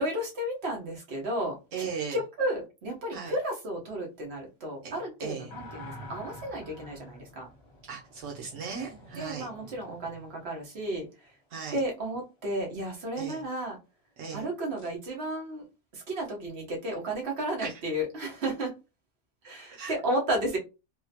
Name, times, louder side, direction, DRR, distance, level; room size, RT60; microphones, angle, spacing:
voice 1, 0.0-1.6 2.1-7.5 8.9-11.1 11.7-13.8 14.3-15.6 15.9-18.7 19.4-20.6, right 1 dB, 55° right, 1.3 m, -33 dB
voice 2, 1.7-2.2 3.1-3.3 4.8-5.5 7.9-9.5 11.5-11.8 13.2-13.4 14.2-14.5 17.6-17.8 19.7-19.9, right 6 dB, 80° right, 1.1 m, -37 dB
sound 1, 5.5-11.3 14.8-14.9, left 1 dB, 55° left, 1.2 m, -48 dB
3.6 x 2.1 x 2.7 m
omnidirectional pair, 1.3 m